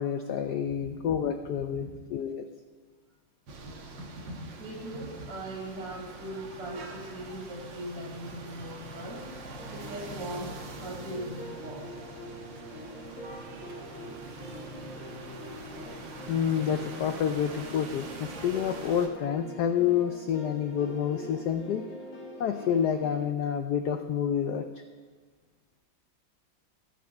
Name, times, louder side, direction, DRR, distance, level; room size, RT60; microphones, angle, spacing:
voice 1, 0.0-2.4 16.3-21.8 22.4-24.6, left 8 dB, 85° left, 7 dB, 0.9 m, -28 dB
sound 1, 3.5-19.1, right 3 dB, 60° right, 1.7 m, -44 dB
voice 2, 3.6-4.2 4.6-9.2 9.7-11.9, right 1 dB, 85° right, -2 dB, 3.3 m, -40 dB
sound 2, 9.1-23.2, left 1 dB, 65° left, 2.7 m, -44 dB
18.5 x 7.6 x 3.5 m, 1.4 s
omnidirectional pair, 2.4 m